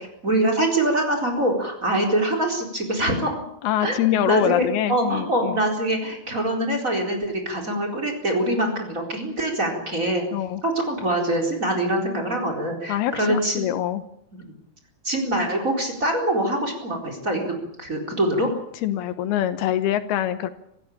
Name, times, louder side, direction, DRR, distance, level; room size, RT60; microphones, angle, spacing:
voice 1, 0.0-3.4 3.8-4.0 4.3-10.2 10.6-13.6 14.3-14.4 15.0-18.5, right 1 dB, 20° right, 4 dB, 4.3 m, -24 dB
voice 2, 3.6-5.6 10.3-10.6 12.9-14.0 18.8-20.5, left 11 dB, 80° left, 12 dB, 2.9 m, -24 dB
25.5 x 15.5 x 8.8 m, 0.73 s
omnidirectional pair, 4.5 m